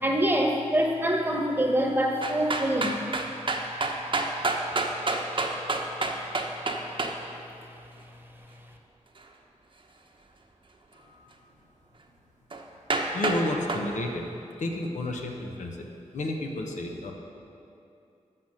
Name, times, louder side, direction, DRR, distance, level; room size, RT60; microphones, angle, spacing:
voice 1, 0.0-3.0, right 1 dB, 15° right, 2 dB, 1.1 m, -25 dB
sound 1, 2.2-7.1 12.5-12.6 12.9-13.4 13.7-13.8, right 3 dB, 40° right, 0.9 m, -27 dB
voice 2, 11.0-11.3 13.1-14.3 14.6-15.8 16.1-17.1, left 2 dB, 75° left, 2 dB, 0.9 m, -31 dB
7.6 x 5.8 x 6.3 m, 2.6 s
cardioid pair, 50°, 13 cm